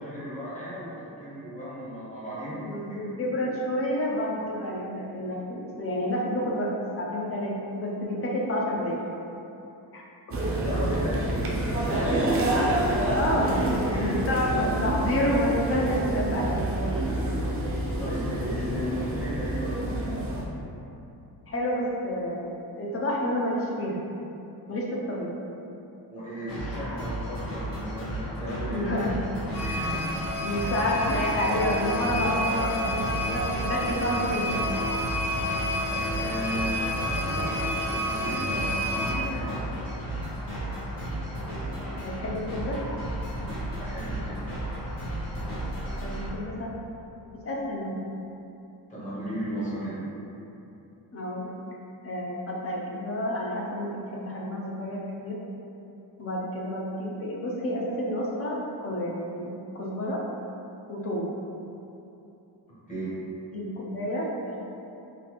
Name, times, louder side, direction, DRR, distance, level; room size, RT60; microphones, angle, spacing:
voice 1, 0.0-3.0 10.6-13.4 13.9-14.2 18.0-20.0 25.1-25.2 26.1-29.0 29.6-30.2 30.6-30.7 35.9-39.8 43.8-44.4 48.9-50.0 62.9-63.2, equal, 20° left, -10 dB, 0.8 m, -35 dB
voice 2, 2.6-9.0 9.9-10.0 10.3-10.4 13.1-16.7 21.5-24.0 24.7-25.3 27.1-27.2 28.7-29.1 30.4-34.7 42.0-42.8 46.0-46.7 47.4-48.0 51.1-51.5 52.0-55.4 56.2-59.5 59.7-60.2 60.9-61.3 63.5-64.6, left 1 dB, 35° left, -3 dB, 0.4 m, -29 dB
sound 1, 10.3-20.4, right 1 dB, 35° right, 0.4 m, -27 dB
sound 2, 26.5-46.3, right 1 dB, 50° left, 1.4 m, -34 dB
sound 3, 29.5-39.1, left 1 dB, 80° left, 1.2 m, -30 dB
3.8 x 2.4 x 2.9 m, 2.9 s
wide cardioid pair, 175°, 42 cm